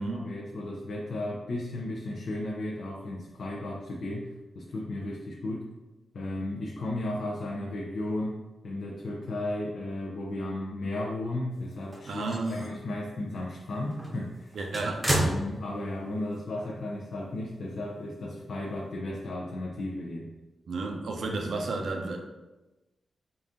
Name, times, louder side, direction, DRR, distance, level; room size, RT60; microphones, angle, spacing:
voice 1, 0.0-5.6 6.1-8.4 8.6-14.6 15.1-20.3, left 1 dB, 60° left, -3 dB, 0.5 m, -34 dB
sound 1, 11.7-12.9 13.3-13.4 13.9-16.1 16.4-16.5 17.7-17.8, right 1 dB, 10° right, 0.8 m, -32 dB
voice 2, 12.0-12.7 14.5-15.0 20.7-22.2, right 3 dB, 70° right, 2 dB, 0.6 m, -32 dB
3.9 x 2.5 x 3.6 m, 1.1 s
wide cardioid pair, 130°, 0 cm